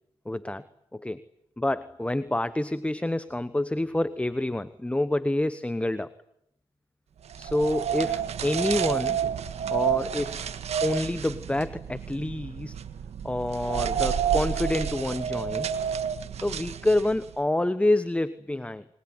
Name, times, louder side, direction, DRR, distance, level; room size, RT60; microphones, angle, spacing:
voice 1, 0.2-0.7 0.9-1.2 1.6-6.1 7.4-9.2 9.7-10.5 10.8-12.8 13.2-15.7 16.4-18.8, left 1 dB, 10° left, 15 dB, 1.1 m, -27 dB
sound 1, 7.3-17.3, right 8 dB, 75° right, 1.6 m, -30 dB
28.0 x 21.0 x 9.6 m, 0.79 s
cardioid pair, 60°, 11 cm